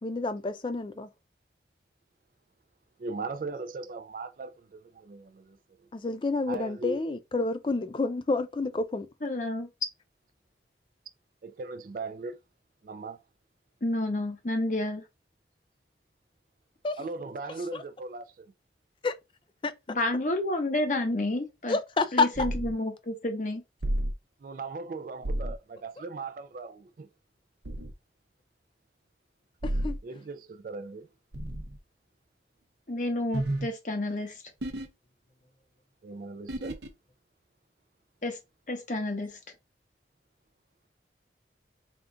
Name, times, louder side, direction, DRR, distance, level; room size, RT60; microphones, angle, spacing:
voice 1, 0.0-1.1 5.9-9.1 16.8-17.0 17.7-17.8 19.0-19.1 19.6-19.7 21.7-22.3 29.6-29.9, left 3 dB, 30° left, 0.3 m, -29 dB
voice 2, 3.0-5.6 6.5-7.0 11.4-12.4 12.8-13.2 17.0-18.5 24.4-27.1 30.0-31.1 36.0-36.8, right 3 dB, 50° right, 0.3 m, -38 dB
voice 3, 9.2-9.7 13.8-15.0 19.9-21.8 22.1-23.6 32.9-34.3 38.2-38.4 38.7-39.4, left 1 dB, 45° left, 0.9 m, -30 dB
sound 1, 22.3-22.7 23.8-24.1 25.2-25.6 27.6-27.9 29.6-30.0 31.3-31.8 33.3-33.7 34.6-34.9 36.5-36.9, right 1 dB, 75° right, 0.7 m, -31 dB
3.6 x 2.4 x 3.8 m
head